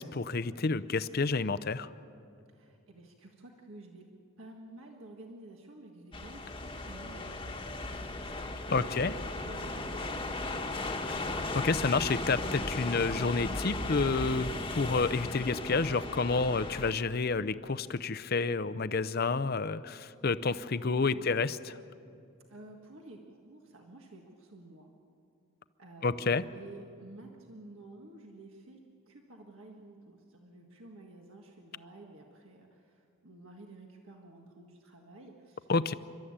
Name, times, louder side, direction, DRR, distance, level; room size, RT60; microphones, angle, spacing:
voice 1, 0.0-1.9 8.7-9.1 11.3-21.8 26.0-26.4 35.7-35.9, left 4 dB, 45° left, 12 dB, 0.6 m, -29 dB
voice 2, 2.5-4.1 4.4-8.5 8.8-10.3 22.5-24.9 25.8-28.8 29.1-35.9, right 2 dB, 65° right, 1 dB, 1.7 m, -51 dB
sound 1, 6.1-16.9, left 2 dB, 20° left, 1.3 m, -36 dB
30.0 x 13.0 x 8.8 m, 2.5 s
head